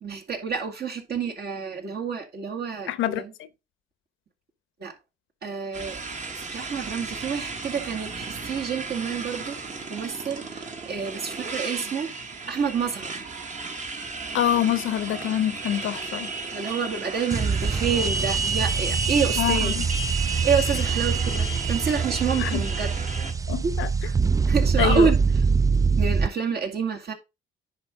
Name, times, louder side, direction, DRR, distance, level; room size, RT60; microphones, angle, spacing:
voice 1, 0.0-3.3 4.8-4.9 5.4-6.0 6.5-9.6 9.9-12.1 12.5-13.2 16.5-19.7 20.4-22.9 24.1-24.2 24.5-25.2 26.0-27.1, right 6 dB, 55° right, 2.2 m, -28 dB
voice 2, 2.9-3.5 14.3-16.3 19.4-19.9 22.4-22.6 23.5-23.9 24.8-25.1, left 11 dB, 85° left, 0.9 m, -25 dB
Motorcycle, 5.7-23.3, right 4 dB, 35° right, 1.4 m, -33 dB
sound 1, 17.3-26.3, right 5 dB, 15° right, 0.3 m, -24 dB
10.0 x 4.1 x 3.7 m
cardioid pair, 90°, 20 cm